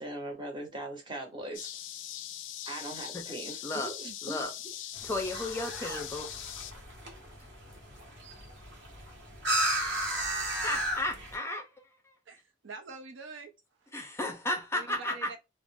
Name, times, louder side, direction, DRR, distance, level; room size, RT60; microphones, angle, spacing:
voice 1, 0.0-1.7 2.7-4.4, right 2 dB, 25° right, 0.8 m, -40 dB
sound 1, 1.5-6.7, left 12 dB, 75° left, 0.3 m, -41 dB
voice 2, 3.6-3.9 4.2-4.5 5.0-6.3 10.6-12.1 13.9-15.3, left 1 dB, 15° left, 0.5 m, -34 dB
sound 2, 4.9-11.4, right 1 dB, 65° right, 0.9 m, -34 dB
voice 3, 12.3-13.5 14.7-15.4, right 4 dB, 80° right, 0.6 m, -44 dB
2.4 x 2.0 x 3.4 m
head